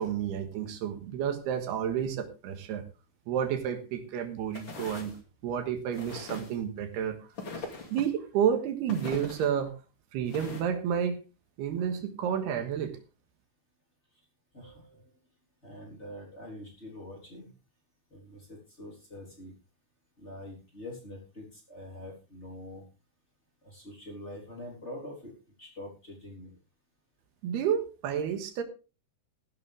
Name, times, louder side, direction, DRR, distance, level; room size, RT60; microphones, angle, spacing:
voice 1, 0.0-2.8 3.3-5.1 5.4-7.3 7.6-9.8 10.1-11.2 11.6-13.0 27.4-28.6, right 8 dB, 85° right, 8 dB, 3.6 m, -30 dB
sound 1, 4.5-5.2 5.9-6.6 7.4-8.1 8.9-9.5 10.3-10.6, left 3 dB, 35° left, 2.6 m, -41 dB
voice 2, 14.5-15.0 15.6-17.5 18.1-19.5 20.2-22.8 23.6-25.3 25.6-26.6, left 1 dB, 15° left, -2 dB, 3.8 m, -45 dB
15.5 x 11.5 x 3.5 m, 0.32 s
omnidirectional pair, 4.6 m